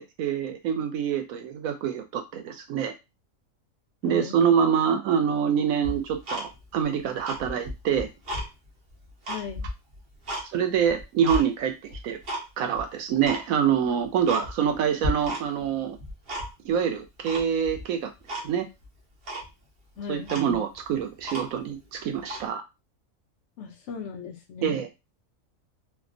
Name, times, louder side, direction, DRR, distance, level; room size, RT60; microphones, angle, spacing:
voice 1, 0.0-2.9 4.0-8.1 10.5-12.2 12.6-16.0 16.6-18.1 18.4-18.7 20.1-22.6 24.6-24.9, right 8 dB, 80° right, 6 dB, 1.1 m, -26 dB
voice 2, 4.0-4.4 9.3-9.7 20.0-20.3 23.6-24.8, left 6 dB, 65° left, 3 dB, 0.8 m, -37 dB
Tick-tock, 5.8-6.8 7.2-8.5 8.9-10.5 10.9-11.5 11.9-12.5 12.7-12.8 13.2-13.5 13.9-14.0 14.3-14.8 15.0-15.7 15.9-16.7 17.3-17.8 18.3-18.5 18.8-18.9 19.3-19.5 20.0-20.1 20.2-21.7 22.2-22.5, equal, 50° right, 0.9 m, -34 dB
3.4 x 2.0 x 2.4 m, 0.24 s
omnidirectional pair, 1.4 m